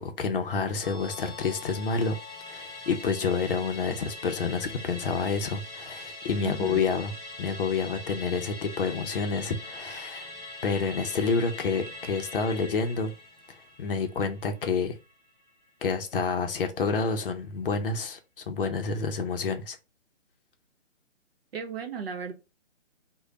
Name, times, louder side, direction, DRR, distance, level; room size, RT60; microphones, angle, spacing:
voice 1, 0.0-2.2 2.5-7.1 7.4-10.3 10.6-13.1 13.8-15.0 15.8-19.8, left 4 dB, 50° left, 0.6 m, -29 dB
Musical instrument, 0.8-15.5 15.8-15.9, left 2 dB, 5° right, 1.8 m, -43 dB
voice 2, 6.4-6.9 21.5-22.3, right 6 dB, 55° right, 0.9 m, -35 dB
3.2 x 2.2 x 3.8 m
hypercardioid pair, 155°, 37 cm